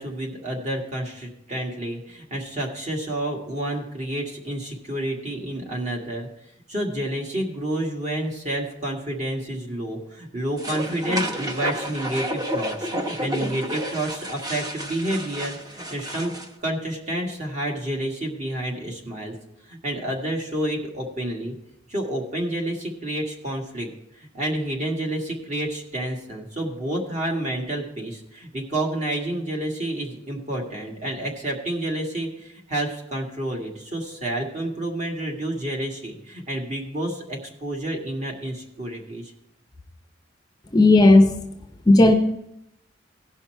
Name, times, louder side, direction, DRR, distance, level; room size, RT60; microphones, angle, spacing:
voice 1, 0.0-6.3 6.7-16.3 16.6-19.3 19.7-21.5 21.9-23.9 24.2-39.3, right 1 dB, 40° right, 0 dB, 1.8 m, -29 dB
sound 1, 10.6-16.5, equal, 20° right, 0.9 m, -30 dB
voice 2, 40.7-41.3 41.9-42.1, left 2 dB, 20° left, 5 dB, 0.6 m, -13 dB
16.5 x 5.6 x 4.5 m, 0.82 s
head